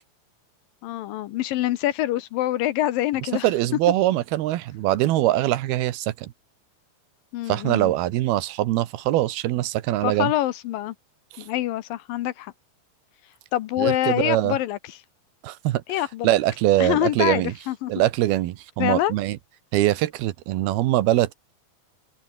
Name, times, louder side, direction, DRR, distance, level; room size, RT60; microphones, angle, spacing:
voice 1, 0.8-3.5 7.3-7.9 10.0-10.9 11.4-12.5 13.5-15.0 15.9-16.3 16.8-17.9 18.8-19.1, left 14 dB, 75° left, 2.4 m, -25 dB
voice 2, 3.4-6.3 7.5-10.3 13.8-14.6 15.4-15.8 16.2-17.5 17.9-19.4 19.7-21.3, right 15 dB, 80° right, 2.9 m, -22 dB
open air
omnidirectional pair, 4.5 m